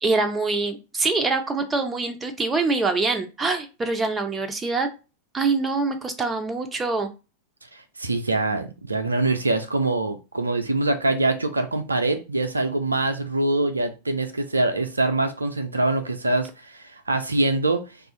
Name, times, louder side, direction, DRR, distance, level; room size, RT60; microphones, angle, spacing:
voice 1, 0.0-4.9 5.3-7.1, right 3 dB, 15° right, 5 dB, 0.5 m, -24 dB
voice 2, 7.7-17.8, right 2 dB, 80° right, 7 dB, 0.3 m, -24 dB
2.4 x 2.3 x 3.7 m, 0.30 s
figure-of-eight pair, 90°, 0 cm